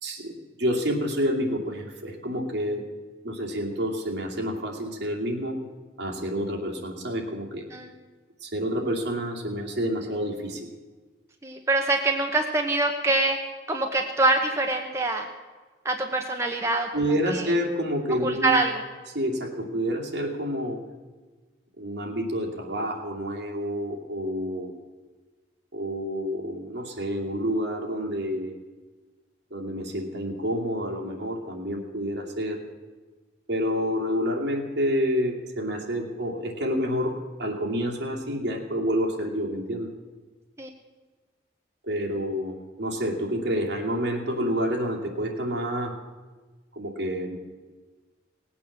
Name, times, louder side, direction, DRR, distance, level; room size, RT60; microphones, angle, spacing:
voice 1, 0.0-2.8 3.2-5.6 6.0-7.7 8.4-10.7 16.9-18.6 19.1-20.8 21.8-24.7 25.7-28.5 29.5-32.6 33.5-39.9 41.8-46.0 46.7-47.4, equal, 65° right, -1 dB, 2.6 m, -28 dB
voice 2, 11.4-13.4 13.7-15.3 15.8-17.5 18.2-18.8 40.6-40.7, right 2 dB, 15° right, 2 dB, 0.9 m, -25 dB
18.0 x 8.5 x 7.4 m, 1.3 s
head